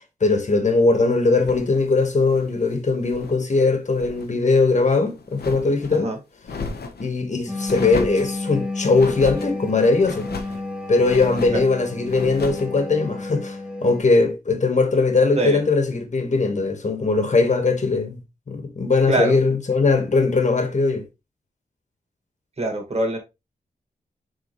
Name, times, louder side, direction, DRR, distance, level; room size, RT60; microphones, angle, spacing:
voice 1, 0.2-6.1 7.0-10.3 10.9-18.2 18.5-21.0, left 3 dB, 50° left, 1.5 m, -20 dB
sound 1, 1.3-3.4 3.7-4.3 4.7-6.0 6.4-7.1 7.7-8.4 8.9-9.5 10.0-10.6 11.0-11.7 12.1-12.7, left 4 dB, 80° left, 1.1 m, -34 dB
sound 2, 7.5-14.0, left 2 dB, 5° right, 1.0 m, -32 dB
voice 2, 22.6-23.2, right 2 dB, 40° right, 2.0 m, -23 dB
6.7 x 4.5 x 3.2 m
wide cardioid pair, 120°, 16 cm